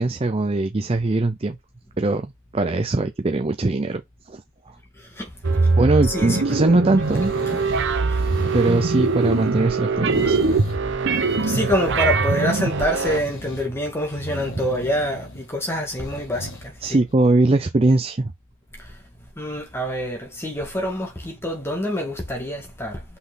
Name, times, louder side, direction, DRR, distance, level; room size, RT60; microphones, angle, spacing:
voice 1, 0.0-1.6 2.0-2.3 2.5-4.0 4.3-4.4 5.8-7.3 8.5-10.4 14.6-14.7 16.8-18.3, right 2 dB, 25° right, 0.5 m, -21 dB
sound 1, 5.4-13.2, right 3 dB, 55° right, 0.8 m, -22 dB
voice 2, 6.1-6.6 8.1-8.3 11.4-17.0 18.8-18.9 19.4-23.0, equal, 10° left, 1.9 m, -26 dB
sound 2, 7.0-7.8 8.1-9.6 10.1-10.8 11.1-12.4 13.0-13.7 14.1-15.5 15.9-16.7 17.1-17.2, left 1 dB, 60° left, 2.2 m, -36 dB
6.1 x 5.5 x 3.8 m
head